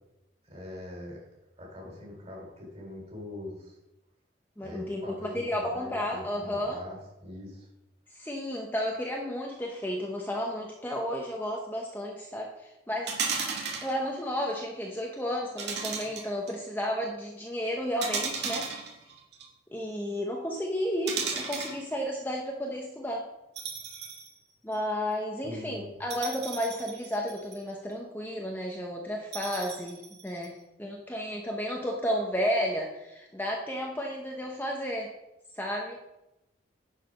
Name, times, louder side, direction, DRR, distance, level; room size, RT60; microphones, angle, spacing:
voice 1, 0.4-1.2 1.6-3.8 4.6-7.7 25.4-26.0, left 1 dB, 35° right, -2 dB, 3.5 m, -42 dB
voice 2, 4.6-6.8 8.1-13.2 13.8-18.7 19.7-23.2 24.6-35.1 35.5-36.0, equal, 10° left, -1 dB, 0.8 m, -32 dB
sound 1, 13.1-13.9 15.6-16.5 18.0-19.4 21.1-21.8 23.6-24.3 24.7-24.8 26.1-27.7 29.3-30.5, right 5 dB, 60° right, 2.0 m, -34 dB
10.5 x 4.9 x 5.5 m, 0.92 s
head